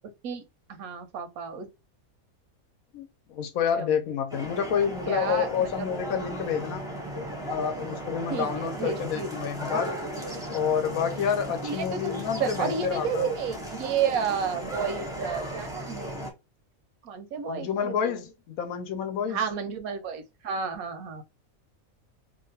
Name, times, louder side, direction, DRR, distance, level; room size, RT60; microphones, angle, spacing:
voice 1, 0.7-1.7 3.8-4.0 5.1-5.7 8.3-9.3 9.7-9.8 11.6-16.3 17.0-18.2 19.3-21.2, right 6 dB, 85° right, 1.1 m, -31 dB
voice 2, 2.9-6.9 7.5-9.9 10.5-13.3 17.5-19.4, left 7 dB, 85° left, 1.1 m, -29 dB
sound 1, 4.3-16.3, right 1 dB, 5° right, 0.6 m, -36 dB
2.8 x 2.3 x 2.7 m
omnidirectional pair, 1.5 m